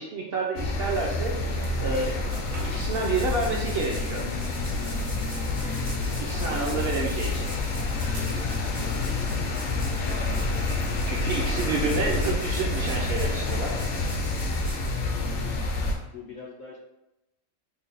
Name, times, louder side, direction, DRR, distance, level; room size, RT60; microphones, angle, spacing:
voice 1, 0.0-1.4 1.8-2.2 2.6-4.2 6.2-7.5 11.1-13.8, right 3 dB, 65° right, -2 dB, 0.6 m, -29 dB
sound 1, 0.6-16.0, left 2 dB, 65° left, 0.8 m, -28 dB
sound 2, 1.6-3.0 4.4-9.0 9.3-9.9, right 1 dB, 90° right, 1.3 m, -47 dB
sound 3, 2.0-15.6, equal, 10° right, 0.3 m, -45 dB
voice 2, 6.4-6.9 8.0-9.4 15.1-15.6 16.0-16.8, left 4 dB, 80° left, -3 dB, 0.4 m, -43 dB
3.3 x 2.1 x 3.9 m, 0.91 s
omnidirectional pair, 1.4 m